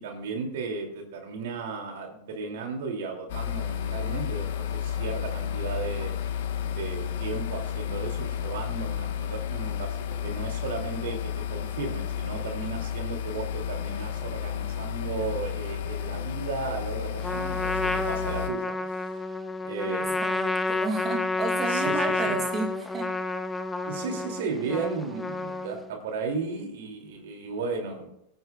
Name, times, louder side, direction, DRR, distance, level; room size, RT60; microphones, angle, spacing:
voice 1, 0.0-6.1 6.6-19.1 19.6-20.2 21.7-22.4 23.8-28.1, right 4 dB, 75° right, 2 dB, 2.7 m, -35 dB
sound 1, 3.3-18.5, left 9 dB, 75° left, 1.3 m, -32 dB
Trumpet, 17.2-25.9, left 2 dB, 10° left, 1.0 m, -30 dB
voice 2, 19.9-23.1, right 3 dB, 30° right, 3 dB, 2.2 m, -32 dB
22.0 x 9.6 x 2.4 m, 0.77 s
hypercardioid pair, 110°, 0 cm